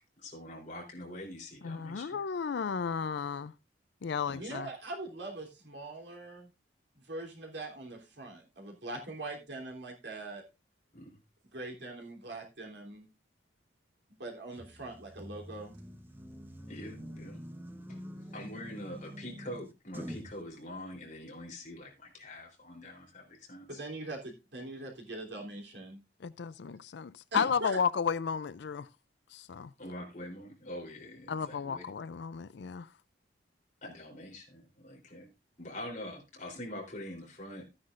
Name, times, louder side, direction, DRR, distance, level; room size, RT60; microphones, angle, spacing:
voice 1, 0.2-2.2 4.3-4.6 10.9-11.1 16.7-17.4 17.9-18.0 18.3-23.8 29.8-31.8 33.8-35.3 35.6-37.6, left 1 dB, 40° left, 3.5 m, -44 dB
voice 2, 1.6-3.5 4.0-4.7 26.2-28.9 29.3-29.7 31.3-32.9, left 6 dB, 65° left, 0.4 m, -33 dB
voice 3, 4.4-6.5 6.9-10.4 11.5-13.1 14.2-15.8 23.7-26.0 27.3-27.8, right 2 dB, 65° right, 3.3 m, -42 dB
sound 1, 14.6-20.4, equal, 10° right, 1.0 m, -46 dB
14.0 x 9.6 x 2.5 m
head